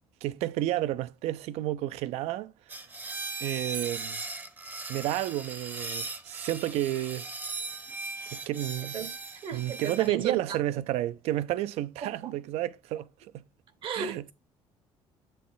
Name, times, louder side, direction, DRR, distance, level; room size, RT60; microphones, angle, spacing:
voice 1, 0.2-2.5 3.4-4.2 4.9-7.3 8.3-9.0 9.5-13.1 13.3-13.4 13.9-14.2, right 14 dB, 80° right, 0.4 m, -31 dB
sound 1, 2.7-10.1, right 3 dB, 15° right, 0.6 m, -38 dB
voice 2, 9.4-10.6 12.0-12.3 13.8-14.3, right 7 dB, 50° right, 0.8 m, -35 dB
7.3 x 4.0 x 3.9 m
cardioid pair, 150°, 11 cm